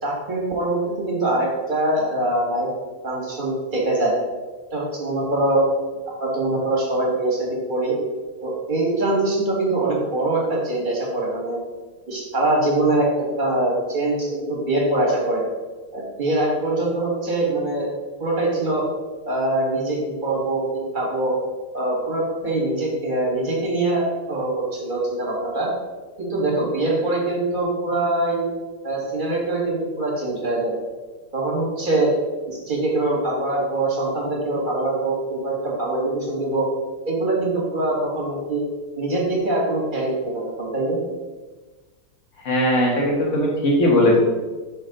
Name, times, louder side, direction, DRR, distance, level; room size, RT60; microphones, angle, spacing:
voice 1, 0.0-2.7 3.0-4.1 4.7-5.6 6.2-8.0 8.4-11.6 12.1-13.1 13.4-15.4 15.9-17.9 18.2-18.8 19.3-21.3 21.7-25.7 26.2-28.4 28.8-30.7 31.3-32.1 32.5-36.7 37.1-38.6 38.9-41.0, right 2 dB, 25° right, -3 dB, 1.3 m, -23 dB
voice 2, 42.4-44.2, left 1 dB, 40° left, -2 dB, 1.5 m, -18 dB
5.2 x 4.1 x 5.1 m, 1.3 s
omnidirectional pair, 2.4 m